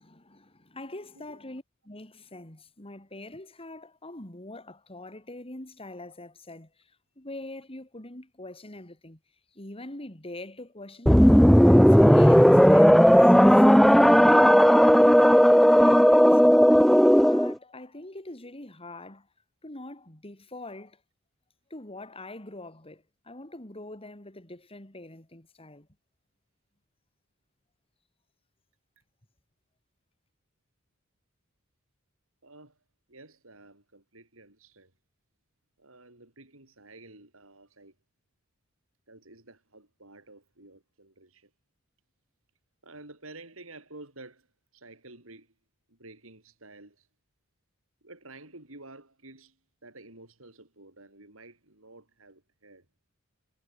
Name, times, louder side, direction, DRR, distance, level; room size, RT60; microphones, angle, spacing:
voice 1, 0.0-6.9 7.2-9.2 9.5-11.2 11.6-14.4 15.0-16.9 17.2-19.3 19.6-21.0 21.7-25.9, left 2 dB, 30° left, 3.4 m, -43 dB
sound 1, 11.1-17.5, equal, ahead, 0.5 m, -16 dB
voice 2, 32.4-32.8 33.1-34.9 35.8-37.9 39.1-41.5 42.8-44.5 44.7-45.5 45.9-47.1 48.0-49.6 49.8-52.8, right 2 dB, 75° right, 6.8 m, -50 dB
head